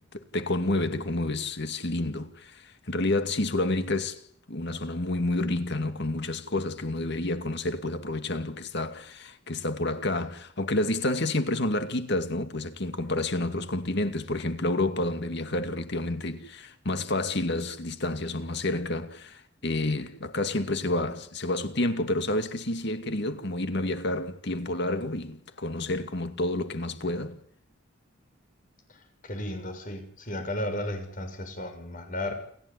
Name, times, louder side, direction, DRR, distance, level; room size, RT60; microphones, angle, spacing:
voice 1, 0.1-4.2 4.5-27.4, left 2 dB, 55° left, 2.3 m, -29 dB
voice 2, 28.9-32.3, left 1 dB, 40° left, 6.5 m, -34 dB
30.0 x 14.5 x 9.8 m
head